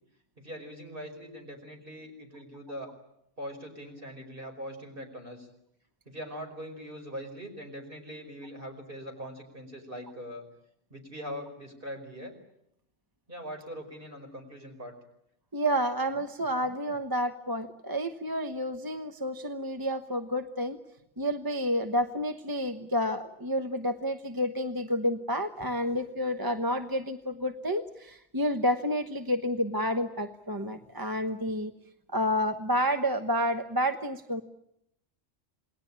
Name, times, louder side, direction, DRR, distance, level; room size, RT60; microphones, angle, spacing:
voice 1, 0.4-2.9 3.4-5.5 6.1-10.5 10.9-12.4 13.3-14.9, equal, 45° right, 3 dB, 5.4 m, -42 dB
voice 2, 15.5-20.8 21.2-31.7 32.1-34.4, equal, 20° right, 7 dB, 1.1 m, -30 dB
28.0 x 20.0 x 8.9 m, 0.79 s
omnidirectional pair, 1.2 m